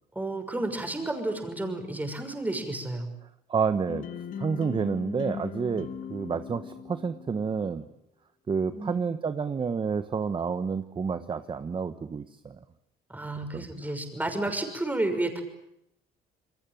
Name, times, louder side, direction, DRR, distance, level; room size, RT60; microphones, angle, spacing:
voice 1, 0.1-3.1 8.7-9.0 13.1-15.4, right 2 dB, 10° right, 6 dB, 6.2 m, -31 dB
voice 2, 3.5-4.0 4.4-7.8 8.5-12.6 13.5-13.6, right 5 dB, 30° right, 11 dB, 1.2 m, -29 dB
sound 1, 3.9-7.8, left 7 dB, 50° left, 2.0 m, -39 dB
28.5 x 22.0 x 9.3 m, 0.77 s
cardioid pair, 110°, 17 cm